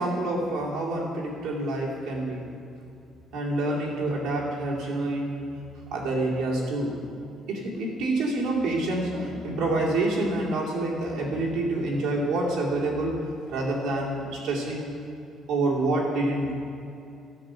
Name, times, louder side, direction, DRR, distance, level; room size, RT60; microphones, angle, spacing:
voice 1, 0.0-2.5 3.3-5.6 5.9-7.0 7.5-14.9 15.5-16.5, right 2 dB, 70° right, -3 dB, 2.5 m, -27 dB
12.5 x 6.3 x 7.7 m, 2.6 s
cardioid pair, 175°, 0 cm